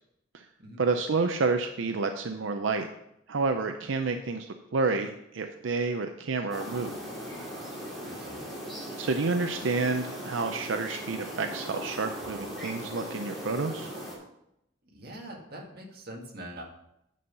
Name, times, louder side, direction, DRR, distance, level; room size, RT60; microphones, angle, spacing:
voice 1, 0.8-2.9 3.3-6.9 9.0-13.9, right 4 dB, 90° right, 6 dB, 0.6 m, -29 dB
sound 1, 6.5-14.1, equal, ahead, 2.7 m, -39 dB
voice 2, 8.0-8.6 14.9-16.6, right 1 dB, 55° right, 0 dB, 1.9 m, -43 dB
9.2 x 5.5 x 5.5 m, 0.80 s
head